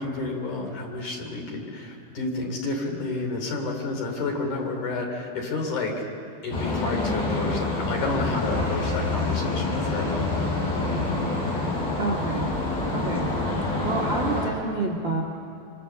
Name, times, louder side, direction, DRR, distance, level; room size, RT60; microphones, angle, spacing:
voice 1, 0.0-6.0 6.4-10.5, left 3 dB, 55° left, 2 dB, 4.4 m, -30 dB
sound 1, 6.5-14.5, left 2 dB, 70° left, 6.1 m, -27 dB
voice 2, 12.0-12.5 12.9-13.3 13.8-15.2, right 3 dB, 45° right, 1 dB, 1.7 m, -28 dB
26.5 x 24.0 x 6.9 m, 2.7 s
omnidirectional pair, 4.5 m